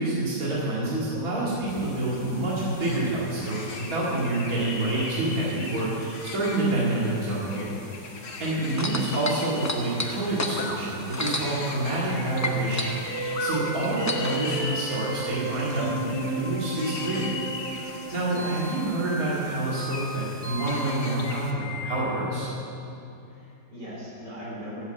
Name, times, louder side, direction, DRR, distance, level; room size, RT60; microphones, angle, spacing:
voice 1, 0.0-7.7 8.4-17.3 18.1-22.5, right 2 dB, 55° right, -7 dB, 2.7 m, -27 dB
sound 1, 1.7-21.5, left 3 dB, 65° left, 2.0 m, -39 dB
sound 2, 8.7-12.1 12.4-14.4 15.2-15.3, left 2 dB, 20° left, 0.5 m, -31 dB
sound 3, 12.4-22.5, right 2 dB, 20° right, 1.5 m, -35 dB
voice 2, 23.3-24.8, equal, 85° right, -5 dB, 4.3 m, -40 dB
13.0 x 8.1 x 8.0 m, 2.6 s
omnidirectional pair, 1.8 m